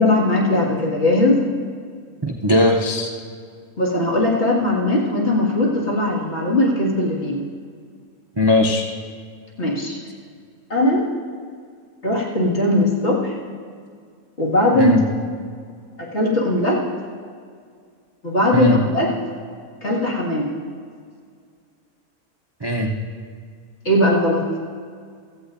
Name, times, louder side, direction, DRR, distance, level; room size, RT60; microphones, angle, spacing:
voice 1, 0.0-1.4 3.8-7.5 9.6-10.0 10.7-11.0 12.0-13.3 14.4-15.0 16.0-16.8 18.2-19.1 19.8-20.5 23.8-24.5, left 1 dB, 45° left, -4 dB, 2.3 m, -19 dB
voice 2, 2.4-3.1 8.4-8.9 14.7-15.0 18.5-18.8 22.6-22.9, left 2 dB, 35° right, 0 dB, 0.3 m, -18 dB
16.5 x 14.5 x 2.6 m, 2.1 s
omnidirectional pair, 1.6 m